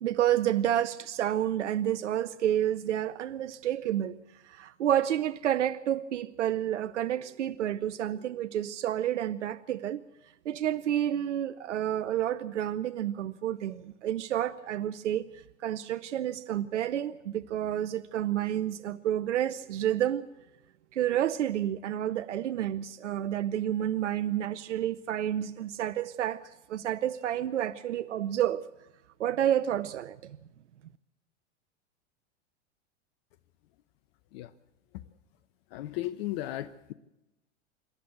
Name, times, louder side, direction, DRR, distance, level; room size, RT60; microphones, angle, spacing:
voice 1, 0.0-4.2 4.4-10.0 10.5-15.2 15.6-20.2 20.9-28.7 29.2-30.4, right 11 dB, 80° right, 0.7 m, -30 dB
voice 2, 35.7-36.9, left 14 dB, 55° left, 0.9 m, -35 dB
27.0 x 12.0 x 8.2 m
hypercardioid pair, 95°, 36 cm